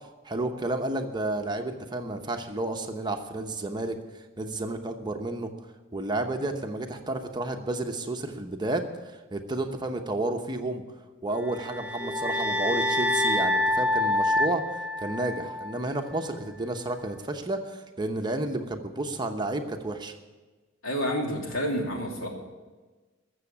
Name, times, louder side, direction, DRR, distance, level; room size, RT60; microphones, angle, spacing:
voice 1, 0.2-4.0 4.4-5.5 5.9-8.8 9.3-10.8 11.2-14.6 15.0-20.1, right 2 dB, 20° right, 5 dB, 0.9 m, -31 dB
sound 1, 11.5-15.8, left 1 dB, 5° right, 0.6 m, -26 dB
voice 2, 20.8-22.3, equal, 85° left, 0 dB, 2.8 m, -29 dB
14.0 x 7.1 x 8.6 m, 1.3 s
head